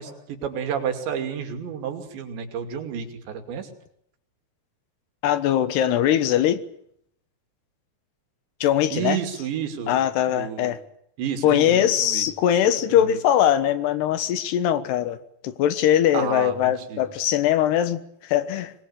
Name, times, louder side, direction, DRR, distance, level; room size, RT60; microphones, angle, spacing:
voice 1, 0.0-3.7 8.9-10.0 10.3-10.7 11.2-12.3 12.9-13.2 16.1-17.0, right 7 dB, 80° right, 4.9 m, -30 dB
voice 2, 5.2-6.6 8.6-9.2 9.9-10.8 11.4-15.2 15.4-18.7, left 10 dB, 75° left, 3.2 m, -21 dB
25.5 x 20.5 x 8.8 m
omnidirectional pair, 5.0 m